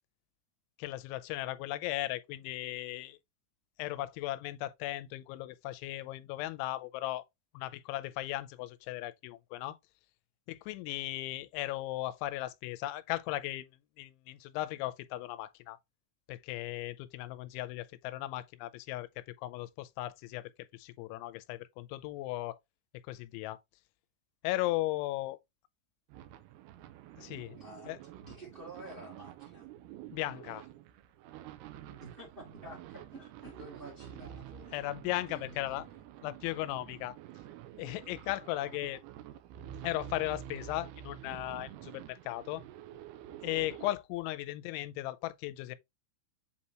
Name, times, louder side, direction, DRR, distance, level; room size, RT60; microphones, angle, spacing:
voice 1, 0.8-3.2 3.8-7.2 7.5-9.8 10.5-13.7 14.0-15.8 16.3-22.6 23.1-23.6 24.4-25.4 27.2-28.0 30.1-30.7 34.7-35.9 36.2-37.2 37.8-39.0 39.8-42.6 43.4-45.8, left 16 dB, 85° left, 3.0 m, -37 dB
sound 1, 26.1-43.9, right 11 dB, 80° right, 2.5 m, -49 dB
voice 2, 27.5-27.9 28.2-29.7 32.0-34.9 35.3-36.0, right 1 dB, 25° right, 1.2 m, -50 dB
8.0 x 4.2 x 2.9 m
omnidirectional pair, 5.3 m